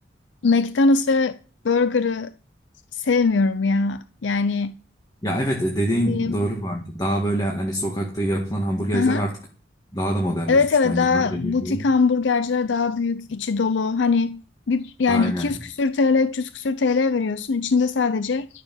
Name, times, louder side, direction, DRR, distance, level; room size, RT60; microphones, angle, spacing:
voice 1, 0.4-1.4 1.6-2.3 2.9-4.7 6.0-6.4 8.9-9.2 10.5-14.4 14.7-18.5, left 4 dB, 70° left, 0.5 m, -21 dB
voice 2, 5.2-9.4 9.9-11.8 15.1-15.6, equal, 20° left, 1.9 m, -25 dB
12.5 x 6.8 x 7.2 m
head